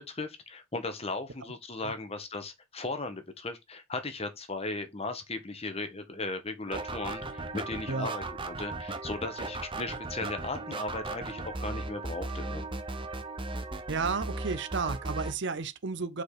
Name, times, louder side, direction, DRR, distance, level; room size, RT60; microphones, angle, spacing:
voice 1, 0.0-12.7, left 2 dB, 30° left, 1.4 m, -37 dB
sound 1, 6.7-15.3, right 2 dB, 25° right, 1.0 m, -37 dB
voice 2, 13.9-16.2, right 4 dB, 60° right, 0.7 m, -32 dB
6.3 x 5.1 x 4.9 m
head